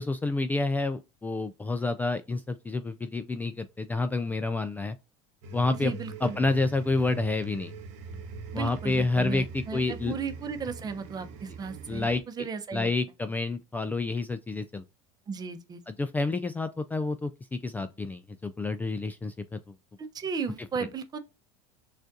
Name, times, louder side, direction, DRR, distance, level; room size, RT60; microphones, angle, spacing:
voice 1, 0.0-5.0 5.5-5.9 6.2-7.7 8.5-10.1 11.9-12.2 12.7-14.8 15.9-19.3 20.8-20.9, left 3 dB, 10° left, 0.3 m, -29 dB
sound 1, 5.4-12.2, right 4 dB, 65° right, 0.9 m, -42 dB
voice 2, 5.7-6.4 8.5-12.9 15.3-15.8 20.0-21.2, right 5 dB, 30° right, 0.8 m, -35 dB
6.2 x 2.5 x 2.6 m
supercardioid pair, 100°, 14 cm